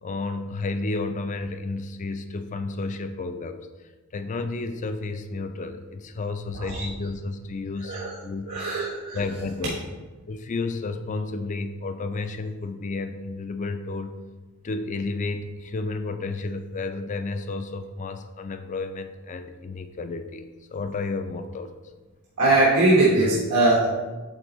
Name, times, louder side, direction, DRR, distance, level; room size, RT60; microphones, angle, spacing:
voice 1, 0.0-3.7 4.1-8.5 9.1-9.8 10.3-14.2 14.6-21.7, left 3 dB, 35° left, 8 dB, 0.4 m, -31 dB
voice 2, 8.5-9.2 22.4-23.9, right 2 dB, 90° right, -6 dB, 1.1 m, -21 dB
8.0 x 4.0 x 3.0 m, 1.3 s
head